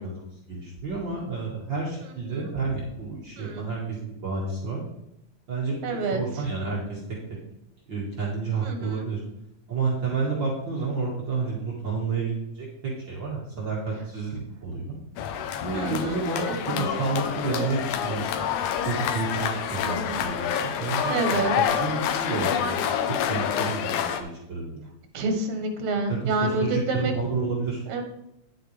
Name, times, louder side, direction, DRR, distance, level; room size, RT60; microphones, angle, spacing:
voice 1, 0.0-4.8 5.5-7.0 7.9-9.2 9.7-15.0 15.6-18.3 18.8-22.9 23.3-24.8 26.1-27.8, right 4 dB, 40° right, -5 dB, 2.3 m, -30 dB
voice 2, 5.8-6.2 8.6-9.1 15.7-16.2 16.7-16.9 19.7-20.2 21.1-21.5 25.1-27.1 27.9-28.0, right 3 dB, 75° right, 4 dB, 2.6 m, -28 dB
sound 1, 15.2-24.2, left 8 dB, 85° left, 2.3 m, -27 dB
10.0 x 8.1 x 3.3 m, 0.83 s
omnidirectional pair, 3.4 m